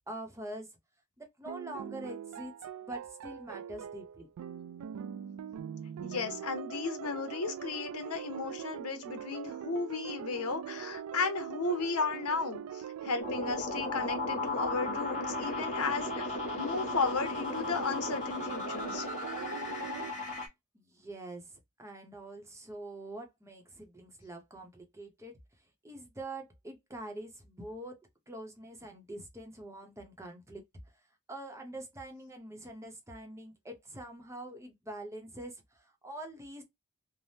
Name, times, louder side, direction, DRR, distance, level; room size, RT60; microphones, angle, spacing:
voice 1, 0.1-0.7 1.2-2.5 2.8-4.3 20.7-25.4 25.8-28.0 28.3-30.6 31.3-36.6, right 1 dB, 15° right, 0.8 m, -45 dB
sound 1, 1.5-20.1, right 8 dB, 75° right, 0.3 m, -42 dB
voice 2, 6.0-19.0, left 4 dB, 80° left, 0.9 m, -34 dB
sound 2, 13.2-20.5, left 3 dB, 35° left, 1.1 m, -36 dB
3.3 x 2.1 x 2.6 m
head